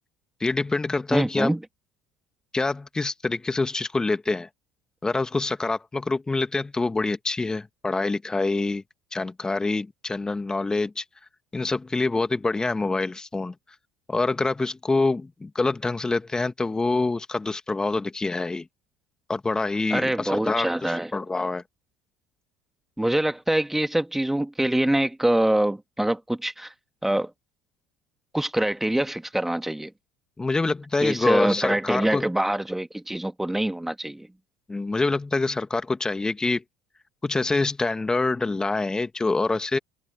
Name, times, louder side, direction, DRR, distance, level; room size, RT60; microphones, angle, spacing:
voice 1, 0.4-1.5 2.5-4.5 5.0-8.8 9.1-11.0 11.5-13.5 14.1-18.7 19.3-21.6 30.4-32.3 34.7-36.6 37.2-39.8, left 3 dB, 15° left, 1.8 m, -26 dB
voice 2, 1.1-1.6 19.9-21.1 23.0-26.7 27.0-27.3 28.3-29.9 31.0-34.3, right 1 dB, 5° right, 1.8 m, -24 dB
hypercardioid pair, 65°, 4 cm